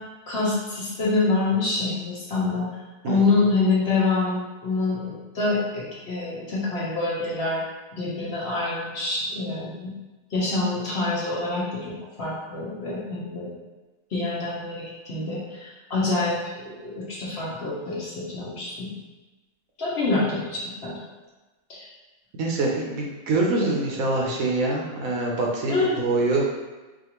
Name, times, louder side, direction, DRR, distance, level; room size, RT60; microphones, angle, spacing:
voice 1, 0.3-2.7 3.0-7.6 7.9-9.9 10.3-11.7 12.2-13.5 14.1-16.4 16.8-18.9 19.8-21.0 21.7-21.9 25.7-26.0, left 3 dB, 50° left, -7 dB, 1.1 m, -26 dB
voice 2, 22.4-26.5, right 2 dB, 75° right, -2 dB, 1.1 m, -24 dB
4.9 x 2.5 x 3.0 m, 1.2 s
omnidirectional pair, 1.5 m